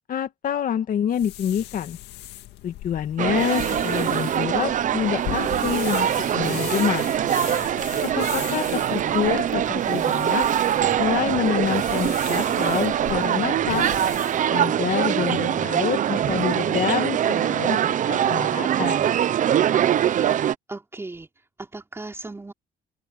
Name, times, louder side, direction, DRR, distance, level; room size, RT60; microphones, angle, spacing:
voice 1, 0.1-2.0 2.6-7.1 8.0-10.5 11.0-13.9 14.5-19.1, left 9 dB, 55° left, 2.4 m, -27 dB
sound 1, 1.1-14.4, left 15 dB, 85° left, 2.2 m, -39 dB
sound 2, 3.2-20.6, right 10 dB, 50° right, 0.8 m, -23 dB
voice 2, 20.7-21.3 21.6-22.5, right 2 dB, 15° right, 4.1 m, -38 dB
open air
cardioid pair, 110°, 17 cm